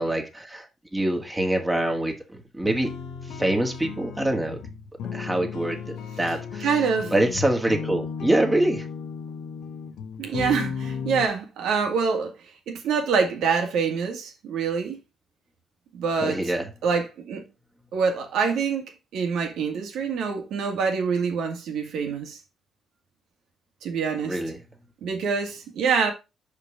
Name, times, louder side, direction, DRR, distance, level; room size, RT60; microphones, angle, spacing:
voice 1, 0.0-2.9 3.3-4.6 5.1-5.8 6.2-6.7 7.1-8.9 16.2-16.7 24.2-24.6, right 1 dB, 15° right, 1.8 m, -25 dB
sound 1, 2.6-11.3, left 6 dB, 85° left, 0.9 m, -35 dB
voice 2, 6.6-7.1 10.2-12.3 12.7-15.0 15.9-16.4 16.8-17.5 17.9-22.4 23.8-24.4 25.0-26.1, right 5 dB, 80° right, 2.0 m, -25 dB
5.3 x 5.0 x 5.0 m
cardioid pair, 90°, 0 cm